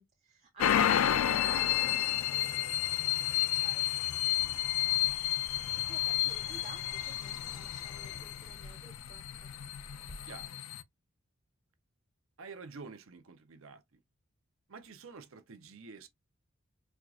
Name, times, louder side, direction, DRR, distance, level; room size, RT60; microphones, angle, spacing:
voice 1, 0.0-9.5, right 3 dB, 30° right, 0.6 m, -56 dB
sound 1, 0.6-10.8, left 11 dB, 80° left, 0.4 m, -31 dB
sound 2, 4.3-10.5, equal, 20° left, 0.5 m, -54 dB
voice 2, 10.2-10.6 12.4-13.8 14.7-16.1, right 4 dB, 75° right, 0.7 m, -48 dB
4.5 x 2.4 x 2.4 m
head